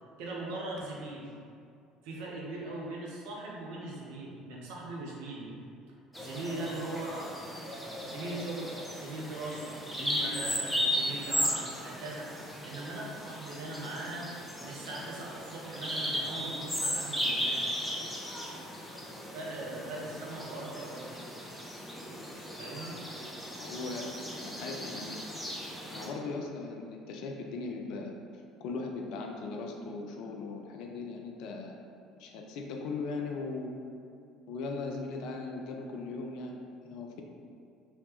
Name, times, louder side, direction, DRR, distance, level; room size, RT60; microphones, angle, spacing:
voice 1, 0.2-1.3 2.0-5.5 6.2-7.4 7.9-12.3 12.6-14.3 14.6-17.6 19.3-21.1 22.6-23.0, right 2 dB, 60° right, -3 dB, 0.6 m, -40 dB
Bird vocalization bird call bird song, 6.1-26.1, equal, 5° left, 0.6 m, -36 dB
voice 2, 23.6-25.2 25.9-28.1 28.6-31.8 32.2-33.7 34.5-37.2, left 3 dB, 55° left, 2 dB, 0.3 m, -38 dB
3.0 x 2.8 x 3.3 m, 2.4 s
figure-of-eight pair, 60°, 0 cm